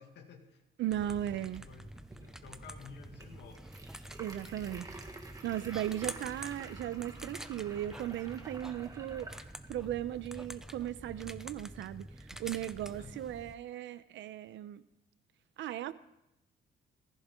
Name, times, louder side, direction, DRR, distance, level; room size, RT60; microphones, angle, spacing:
voice 1, 0.0-3.7 5.9-6.4 13.0-13.3, left 6 dB, 65° left, 3 dB, 2.1 m, -54 dB
voice 2, 0.8-1.7 4.2-4.9 5.4-9.3 9.7-14.8 15.6-15.9, right 12 dB, 70° right, 15 dB, 0.8 m, -37 dB
sound 1, 0.9-13.6, right 1 dB, ahead, 0.5 m, -47 dB
sound 2, 1.1-10.6, right 3 dB, 20° right, 1.8 m, -52 dB
18.0 x 14.5 x 3.8 m, 0.87 s
cardioid pair, 135°, 20 cm